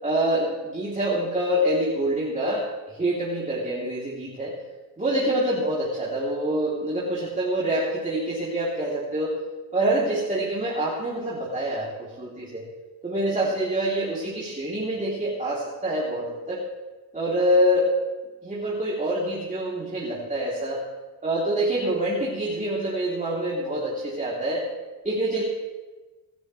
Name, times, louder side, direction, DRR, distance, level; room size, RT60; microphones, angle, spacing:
voice 1, 0.0-4.6 5.0-9.4 9.7-12.7 13.0-16.6 17.1-17.9 18.4-20.8 21.2-24.6 25.0-25.4, right 1 dB, 15° right, -6 dB, 3.4 m, -26 dB
26.0 x 12.5 x 3.4 m, 1.3 s
cardioid pair, 95°, 44 cm